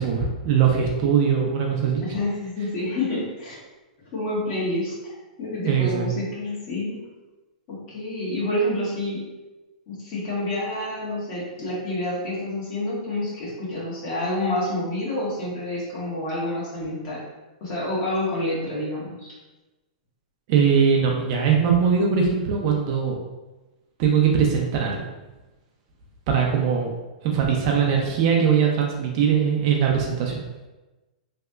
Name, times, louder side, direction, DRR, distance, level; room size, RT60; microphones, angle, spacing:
voice 1, 0.0-2.0 5.6-6.1 20.5-23.1 24.0-25.0 26.3-26.9 27.2-30.4, right 7 dB, 40° right, 0 dB, 0.5 m, -21 dB
voice 2, 2.0-3.6 4.1-4.9 5.4-7.0 7.7-9.2 9.9-17.2 17.6-19.3, left 1 dB, 40° left, -7 dB, 1.5 m, -28 dB
3.2 x 2.8 x 2.3 m, 1.1 s
hypercardioid pair, 145°, 5 cm